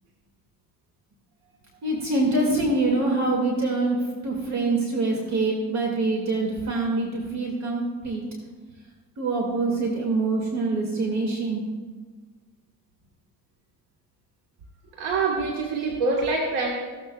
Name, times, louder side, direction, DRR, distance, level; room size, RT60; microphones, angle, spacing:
voice 1, 1.8-4.0 4.2-8.2 9.2-11.6, right 2 dB, 50° right, -1 dB, 2.4 m, -25 dB
voice 2, 15.0-16.7, right 3 dB, 90° right, -1 dB, 1.8 m, -25 dB
15.5 x 13.0 x 2.4 m, 1.4 s
cardioid pair, 110°, 37 cm